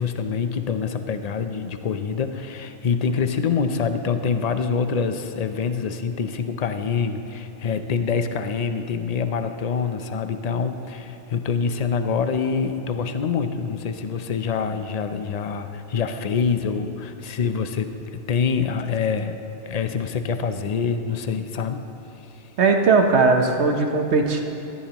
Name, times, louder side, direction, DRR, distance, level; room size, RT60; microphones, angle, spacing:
voice 1, 0.0-19.4 19.6-21.8, left 5 dB, 45° left, 8 dB, 0.6 m, -25 dB
voice 2, 22.6-24.4, right 4 dB, 70° right, 4 dB, 1.2 m, -18 dB
17.5 x 14.0 x 3.0 m, 2.8 s
omnidirectional pair, 1.2 m